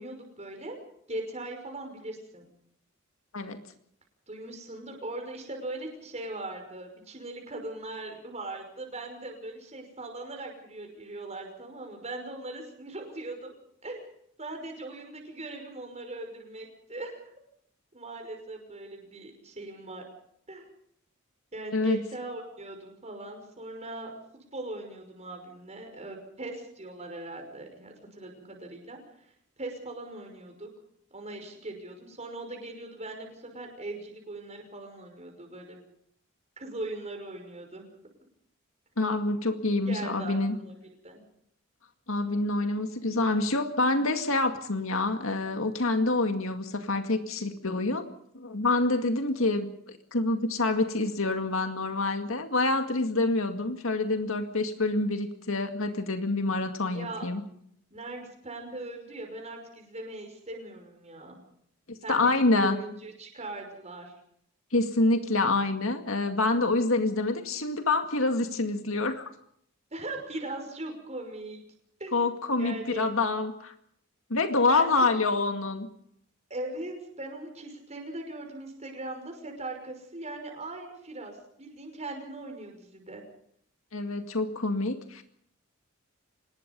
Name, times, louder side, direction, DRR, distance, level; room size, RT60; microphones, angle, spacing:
voice 1, 0.0-2.4 4.3-13.5 13.8-14.1 14.4-17.2 17.9-20.0 20.5-20.7 21.5-29.0 29.6-30.7 31.1-35.8 36.6-37.9 39.9-40.7 41.0-41.2 56.8-57.3 57.9-61.4 62.0-64.1 69.9-71.6 72.0-72.2 72.6-73.1 74.7-74.9 76.5-83.2, right 2 dB, 35° right, 3 dB, 5.8 m, -40 dB
voice 2, 39.0-40.6 42.1-48.0 48.3-57.4 62.1-62.8 64.7-69.2 72.1-73.7 74.3-75.9 83.9-85.2, left 2 dB, 70° left, 6 dB, 2.2 m, -27 dB
25.5 x 20.5 x 5.5 m, 0.68 s
head